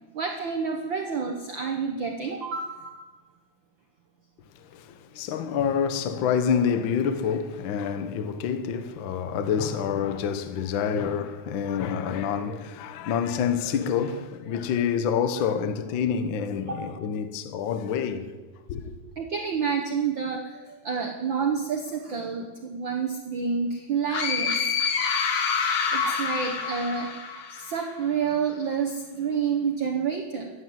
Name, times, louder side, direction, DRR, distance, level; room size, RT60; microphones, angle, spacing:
voice 1, 0.1-3.1 16.7-16.8 19.2-24.7 25.6-27.2 27.5-30.5, right 6 dB, 65° right, 1.2 m, -29 dB
voice 2, 4.6-18.3 18.7-18.9, left 7 dB, 75° left, 1.1 m, -27 dB
sound 1, 24.1-27.8, left 6 dB, 60° left, 2.1 m, -27 dB
15.0 x 9.9 x 7.8 m
omnidirectional pair, 3.6 m